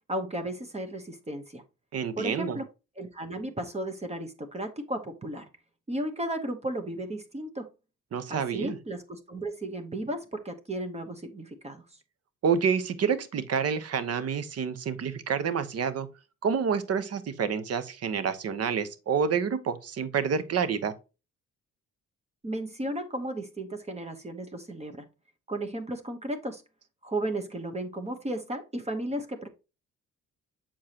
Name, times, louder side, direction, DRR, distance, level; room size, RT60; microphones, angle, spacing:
voice 1, 0.1-1.6 2.2-2.7 3.0-5.5 5.9-7.7 8.3-11.8 22.4-25.1 25.5-26.6 27.0-29.5, right 1 dB, 20° right, 1.1 m, -34 dB
voice 2, 1.9-2.6 8.1-8.8 12.4-16.1 16.4-20.9, right 6 dB, 55° right, 1.0 m, -28 dB
7.3 x 4.8 x 2.9 m
cardioid pair, 90°, 30 cm